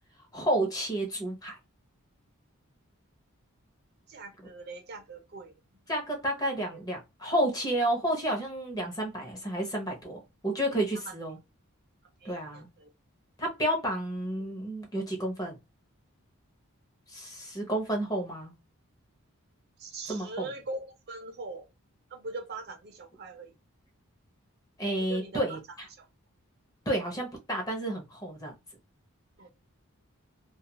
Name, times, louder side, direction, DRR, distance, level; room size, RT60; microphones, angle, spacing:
voice 1, 0.3-1.6 5.9-11.4 12.2-12.7 13.4-15.6 17.1-18.5 20.1-20.5 24.8-25.6 26.9-28.5, right 1 dB, 15° left, 0.7 m, -31 dB
voice 2, 4.1-5.6 6.7-6.8 11.0-11.2 12.2-12.9 14.4-14.5 19.8-21.7 22.1-23.5 25.0-25.6 25.9-26.1 29.4-29.5, right 3 dB, 45° right, 0.5 m, -41 dB
2.3 x 2.2 x 2.8 m
head